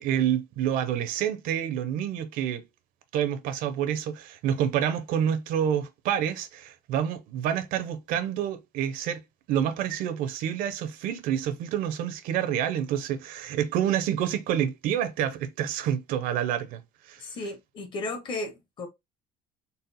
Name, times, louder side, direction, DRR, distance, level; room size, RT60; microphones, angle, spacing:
voice 1, 0.0-2.6 3.1-9.2 9.5-16.8 17.1-17.2, right 9 dB, 60° right, 0.6 m, -28 dB
voice 2, 17.2-18.9, left 2 dB, 30° left, 0.7 m, -34 dB
4.0 x 2.1 x 3.9 m
cardioid pair, 175°, 16 cm